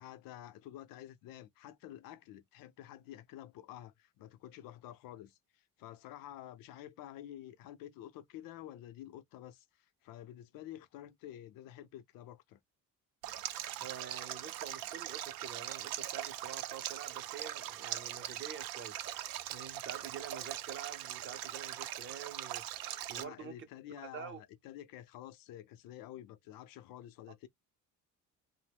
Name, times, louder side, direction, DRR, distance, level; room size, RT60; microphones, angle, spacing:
voice 1, 0.0-12.6 23.1-27.5, left 12 dB, 90° left, 0.6 m, -50 dB
Stream, 13.2-23.2, right 12 dB, 90° right, 0.5 m, -41 dB
voice 2, 13.8-19.0 19.5-23.7 24.1-24.4, right 7 dB, 35° right, 0.5 m, -47 dB
2.9 x 2.0 x 3.3 m
cardioid pair, 160°, 33 cm